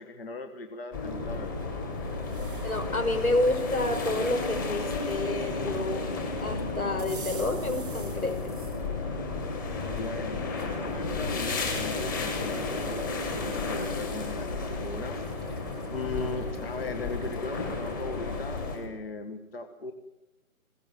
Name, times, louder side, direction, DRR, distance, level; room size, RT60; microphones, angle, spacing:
voice 1, 0.0-1.5 9.8-19.9, left 3 dB, 40° left, 6 dB, 1.7 m, -38 dB
sound 1, 0.9-18.8, left 3 dB, 15° left, 2.4 m, -33 dB
sound 2, 1.9-3.1 3.6-5.1 7.0-8.9 9.4-10.8 11.4-11.5 12.6-12.7 13.0-13.5 14.8-18.9, right 4 dB, 5° right, 1.0 m, -50 dB
voice 2, 2.6-8.5, left 2 dB, 80° left, 7 dB, 5.6 m, -29 dB
21.0 x 17.0 x 9.2 m, 0.93 s
figure-of-eight pair, 165°, 43 cm